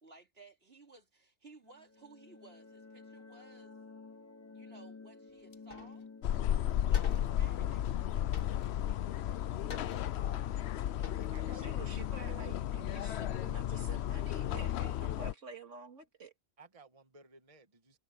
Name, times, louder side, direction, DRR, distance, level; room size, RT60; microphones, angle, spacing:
voice 1, 0.0-3.8 4.5-6.1 6.8-8.4 8.8-10.3, right 3 dB, 50° right, 3.4 m, -59 dB
sound 1, 1.6-10.2, left 4 dB, 25° left, 0.3 m, -54 dB
sound 2, 5.5-6.0 6.3-6.4 6.9-7.4 8.3-9.0 9.7-10.3 10.7-10.8 11.0-11.4, left 6 dB, 50° left, 1.4 m, -48 dB
sound 3, 6.2-15.3, left 11 dB, 65° left, 0.8 m, -33 dB
voice 2, 11.0-12.4 16.6-18.0, right 4 dB, 30° right, 1.4 m, -57 dB
voice 3, 11.5-16.3, right 4 dB, 75° right, 2.4 m, -49 dB
omnidirectional pair, 1.3 m